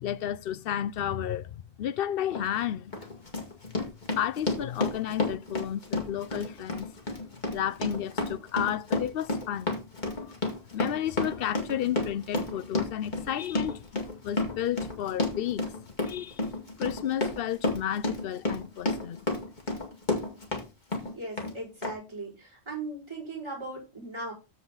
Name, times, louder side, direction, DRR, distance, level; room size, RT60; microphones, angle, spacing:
voice 1, 0.0-2.9 4.2-6.9 7.5-9.7 10.0-10.3 10.7-15.6 16.1-16.4 16.8-19.2, left 10 dB, 65° left, 0.8 m, -32 dB
Run, 2.3-2.5 2.9-20.6 20.9-21.5 21.8-21.9, left 2 dB, 45° left, 2.1 m, -31 dB
voice 2, 21.1-24.3, right 2 dB, 25° right, 4.9 m, -38 dB
13.5 x 4.6 x 3.9 m
omnidirectional pair, 1.1 m